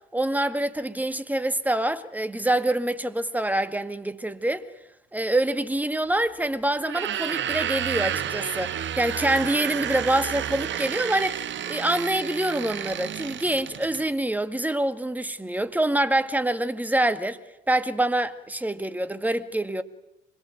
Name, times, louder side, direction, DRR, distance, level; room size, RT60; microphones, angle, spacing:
voice 1, 0.1-4.7 5.1-17.4 17.7-19.8, right 1 dB, 5° right, 1.9 m, -26 dB
sound 1, 6.8-14.0, right 9 dB, 40° right, 1.3 m, -31 dB
26.0 x 21.5 x 9.2 m
hypercardioid pair, 65°, 29 cm